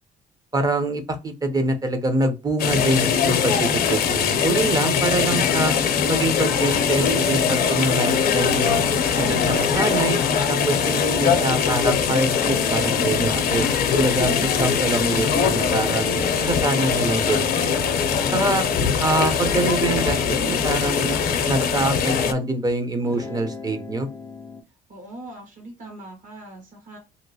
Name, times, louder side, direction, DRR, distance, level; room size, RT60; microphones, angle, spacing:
voice 1, 0.5-5.7 6.1-8.8 9.2-10.2 10.5-13.7 13.9-16.1 16.4-17.8 18.3-18.7 19.0-21.1 21.4-24.1, right 2 dB, 20° right, 8 dB, 0.7 m, -25 dB
sound 1, 2.6-22.3, left 7 dB, 60° left, 0.6 m, -21 dB
sound 2, 12.3-15.0 15.5-18.9 19.3-22.5 23.0-24.6, left 2 dB, 15° left, 0.4 m, -38 dB
voice 2, 18.3-18.9 24.9-27.0, right 2 dB, 50° right, 0 dB, 1.4 m, -41 dB
3.0 x 2.9 x 2.7 m, 0.28 s
cardioid pair, 110°, 17 cm